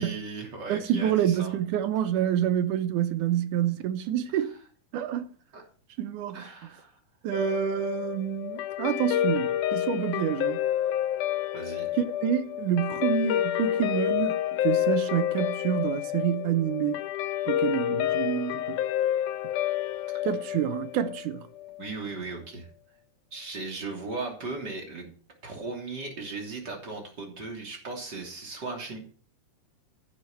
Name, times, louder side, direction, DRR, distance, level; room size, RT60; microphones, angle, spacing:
voice 1, 0.0-1.6 4.3-4.5 5.5-5.6 6.3-7.0 11.5-11.9 21.8-22.7 23.3-25.1 25.4-29.0, right 3 dB, 35° right, 3.5 m, -37 dB
voice 2, 0.7-4.5 4.9-5.3 6.0-6.4 7.2-10.6 11.9-17.0 17.5-18.8 20.2-21.5, right 10 dB, 85° right, 2.4 m, -27 dB
Guitar, 7.3-21.9, left 12 dB, 85° left, 2.1 m, -29 dB
14.5 x 7.7 x 4.4 m
omnidirectional pair, 3.5 m